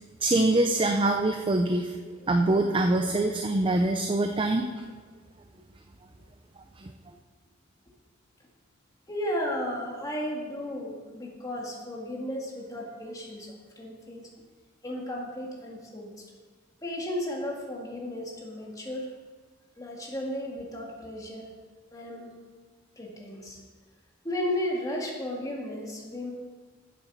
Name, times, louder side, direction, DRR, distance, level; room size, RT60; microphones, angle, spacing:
voice 1, 0.2-2.0 2.2-4.7 6.8-6.9, right 2 dB, 25° right, 4 dB, 0.5 m, -24 dB
voice 2, 9.1-14.3 14.8-16.2 16.8-19.1 19.8-21.5 21.9-22.4 23.0-23.6 24.2-26.3, left 1 dB, 20° left, -2 dB, 1.9 m, -34 dB
8.5 x 7.4 x 6.1 m, 1.5 s
head